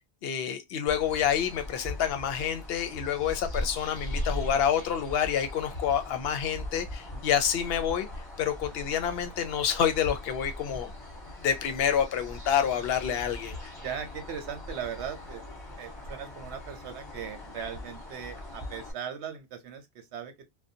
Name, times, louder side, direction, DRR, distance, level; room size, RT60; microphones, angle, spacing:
voice 1, 0.2-8.1 8.4-10.9 11.4-13.6, left 8 dB, 70° left, 0.8 m, -28 dB
sound 1, 0.9-18.9, left 1 dB, 25° left, 0.9 m, -40 dB
voice 2, 13.8-15.4 15.8-20.5, right 8 dB, 80° right, 0.9 m, -39 dB
2.5 x 2.1 x 2.6 m
omnidirectional pair, 1.1 m